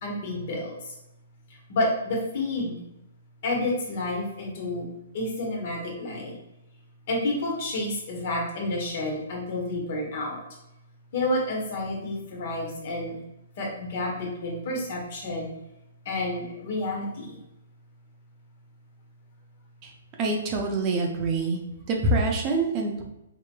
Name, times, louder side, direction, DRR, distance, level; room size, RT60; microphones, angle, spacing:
voice 1, 0.0-0.9 1.7-2.8 3.4-4.9 5.1-6.4 7.1-10.4 11.1-13.2 13.6-15.5 16.0-17.4, left 1 dB, 50° left, 0 dB, 1.2 m, -29 dB
voice 2, 20.2-21.6 21.9-23.0, right 2 dB, 30° right, 1 dB, 0.7 m, -25 dB
4.7 x 2.9 x 2.2 m, 0.91 s
hypercardioid pair, 145°, 0 cm